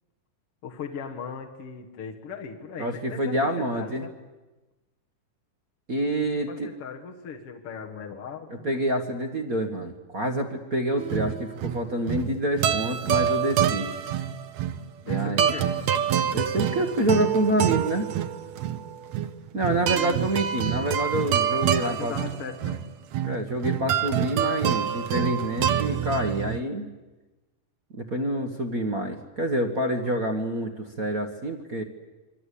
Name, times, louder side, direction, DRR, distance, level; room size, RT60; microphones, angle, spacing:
voice 1, 0.6-4.1 6.5-8.7 15.0-15.7 19.6-20.2 21.8-22.8, left 6 dB, 50° left, 1 dB, 2.2 m, -38 dB
voice 2, 2.8-4.0 5.9-6.7 8.6-13.9 15.1-15.4 16.3-18.1 19.5-22.1 23.2-26.9 27.9-31.8, right 1 dB, 40° right, 5 dB, 1.3 m, -27 dB
sound 1, 11.0-26.6, right 9 dB, 65° right, 2.0 m, -27 dB
27.5 x 22.5 x 8.5 m, 1.1 s
omnidirectional pair, 3.7 m